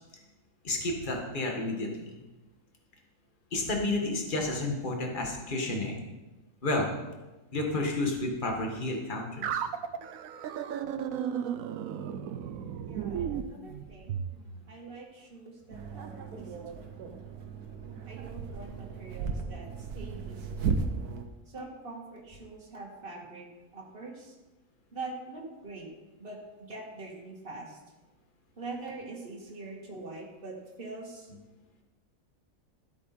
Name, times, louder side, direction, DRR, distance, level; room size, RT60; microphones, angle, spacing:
voice 1, 0.6-2.1 3.5-6.0 6.6-6.9 7.5-9.5, left 2 dB, 35° left, 1 dB, 1.9 m, -31 dB
sound 1, 9.4-14.3, right 8 dB, 70° right, 1.0 m, -34 dB
voice 2, 12.8-14.2 14.7-17.2 18.1-20.8 21.5-24.3 24.9-25.9 26.2-27.8 28.6-31.3, right 3 dB, 35° right, -2 dB, 2.2 m, -44 dB
sound 2, 15.7-21.2, right 5 dB, 85° right, 1.5 m, -35 dB
13.5 x 8.3 x 4.4 m, 1.1 s
omnidirectional pair, 1.6 m